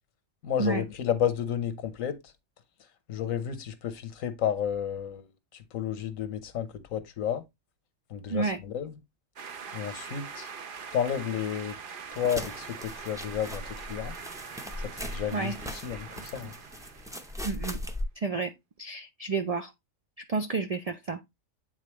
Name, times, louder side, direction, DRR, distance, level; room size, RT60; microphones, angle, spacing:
voice 1, 0.4-2.3 3.1-5.3 5.5-7.4 8.1-9.0 9.7-10.5 10.9-11.8 12.1-14.2 14.8-16.5, left 9 dB, 90° left, 1.3 m, -32 dB
sound 1, 9.4-17.7, right 6 dB, 50° right, 0.8 m, -43 dB
sound 2, 12.1-18.0, left 1 dB, 5° right, 0.5 m, -39 dB
voice 2, 17.4-17.8 18.2-18.5 18.8-19.7 20.3-21.2, right 4 dB, 75° right, 0.3 m, -30 dB
8.8 x 3.8 x 3.0 m
omnidirectional pair, 1.4 m